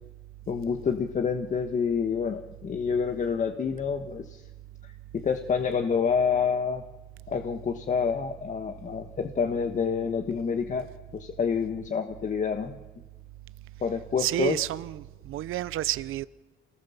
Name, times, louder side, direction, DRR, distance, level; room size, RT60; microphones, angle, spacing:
voice 1, 0.5-4.4 4.8-6.8 7.3-10.9 11.1-12.8 13.8-14.6, left 6 dB, 35° left, 1.3 m, -28 dB
voice 2, 14.2-15.0 15.2-16.3, right 14 dB, 75° right, 0.8 m, -29 dB
29.0 x 18.5 x 7.2 m
cardioid pair, 155°, 21 cm